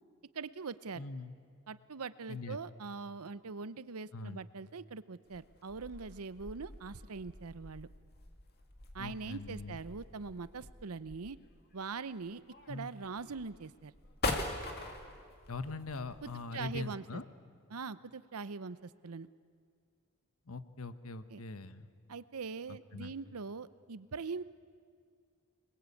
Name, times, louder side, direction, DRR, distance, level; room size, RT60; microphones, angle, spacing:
voice 1, 0.3-1.0 1.7-7.9 8.9-11.4 11.7-12.4 12.7-13.9 16.2-17.2 17.7-19.3 21.3-21.4 22.1-24.4, right 4 dB, 85° right, 16 dB, 0.7 m, -42 dB
voice 2, 1.0-1.3 2.3-2.6 4.1-4.4 9.0-9.8 12.7-12.9 15.5-17.2 20.5-21.9 22.7-23.1, left 3 dB, 70° left, 12 dB, 1.1 m, -42 dB
sound 1, 5.3-16.4, left 2 dB, 45° left, 2.3 m, -43 dB
26.5 x 21.0 x 8.4 m, 2.1 s
head